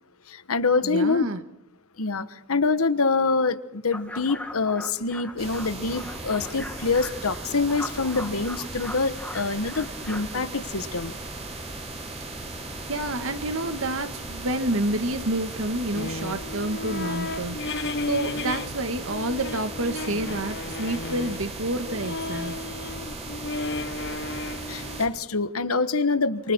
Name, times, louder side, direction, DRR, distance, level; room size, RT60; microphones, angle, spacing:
voice 1, 0.3-1.3 2.0-11.1 24.7-26.5, left 4 dB, 85° left, 12 dB, 1.3 m, -25 dB
voice 2, 0.8-1.4 12.9-22.5, right 1 dB, 70° right, 8 dB, 1.9 m, -29 dB
sound 1, 3.9-10.5, left 1 dB, 5° left, 2.6 m, -40 dB
sound 2, 5.4-25.1, right 2 dB, 30° right, 4.5 m, -37 dB
sound 3, 15.9-18.7 19.0-25.1, left 2 dB, 55° left, 0.9 m, -34 dB
28.5 x 26.5 x 4.5 m, 0.79 s
head